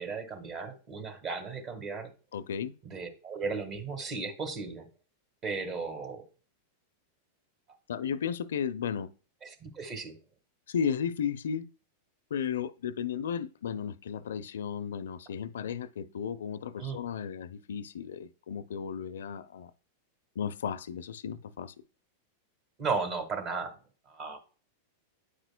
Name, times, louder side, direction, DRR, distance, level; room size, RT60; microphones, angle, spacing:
voice 1, 0.0-2.1 2.8-4.9 5.4-6.2 9.4-10.1 16.8-17.0 22.8-23.7 24.1-24.4, right 4 dB, 35° right, 1.5 m, -35 dB
voice 2, 2.3-2.7 7.9-9.1 10.7-11.7 12.3-19.7 20.4-21.7, left 7 dB, 85° left, 0.4 m, -34 dB
8.6 x 5.0 x 2.2 m
hypercardioid pair, 115°, 0 cm